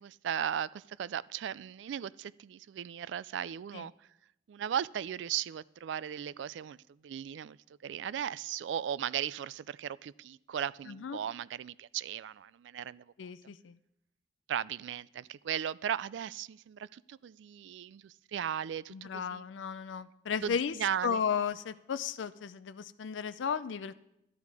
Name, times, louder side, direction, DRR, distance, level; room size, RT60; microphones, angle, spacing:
voice 1, 0.0-3.9 4.5-6.8 7.0-7.6 7.8-13.0 14.5-19.5 20.4-21.2, right 9 dB, 75° right, 20 dB, 0.3 m, -37 dB
voice 2, 10.9-11.2 13.2-13.8 18.9-20.8 21.0-23.9, left 6 dB, 85° left, 14 dB, 0.4 m, -34 dB
12.5 x 10.0 x 4.8 m, 0.82 s
head